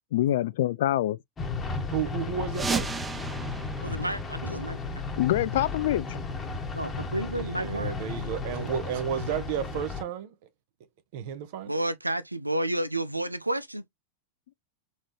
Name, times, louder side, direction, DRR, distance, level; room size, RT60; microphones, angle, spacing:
voice 1, 0.1-1.2 5.2-6.2, left 13 dB, 55° left, 0.3 m, -25 dB
sound 1, 1.4-10.0, left 4 dB, 20° left, 1.2 m, -34 dB
voice 2, 1.9-2.9 7.3-10.3 11.1-11.7, right 9 dB, 50° right, 0.9 m, -32 dB
sound 2, 2.5-5.1, right 4 dB, 15° right, 0.5 m, -34 dB
voice 3, 3.8-4.8 6.7-8.0 11.7-13.8, right 1 dB, 85° right, 0.4 m, -31 dB
4.2 x 3.6 x 3.0 m
figure-of-eight pair, 90°, 0 cm